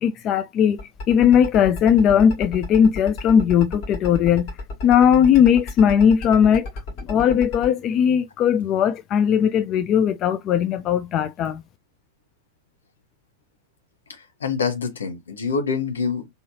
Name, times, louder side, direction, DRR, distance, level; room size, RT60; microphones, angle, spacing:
voice 1, 0.0-4.5 4.8-6.7 7.0-11.6, left 8 dB, 35° left, 0.4 m, -18 dB
sound 1, 0.8-7.7, left 3 dB, 50° left, 2.6 m, -32 dB
voice 2, 14.1-16.3, left 5 dB, 70° left, 1.2 m, -26 dB
4.0 x 3.8 x 2.6 m
figure-of-eight pair, 90°, 0 cm